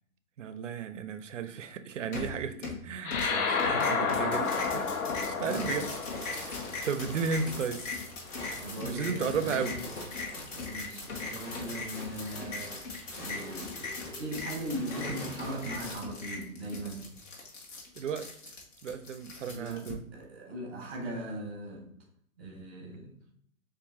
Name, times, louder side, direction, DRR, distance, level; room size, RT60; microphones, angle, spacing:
voice 1, 0.4-4.9 5.2-5.9 6.2-7.8 8.8-9.8 18.0-18.3 18.8-20.0, right 6 dB, 60° right, 0.5 m, -34 dB
sound 1, 2.1-2.8 3.1-19.9, left 3 dB, 60° left, 1.7 m, -40 dB
sound 2, 3.0-7.8, left 5 dB, 75° left, 0.9 m, -31 dB
voice 2, 3.6-4.2 5.3-5.7 8.6-9.8 10.5-12.7 13.1-17.0 19.4-19.9 20.1-21.9 22.4-23.1, right 1 dB, 10° left, 0.4 m, -39 dB
sound 3, 4.4-16.0, left 1 dB, 40° left, 1.8 m, -45 dB
7.2 x 2.6 x 2.7 m
hypercardioid pair, 150°, 43 cm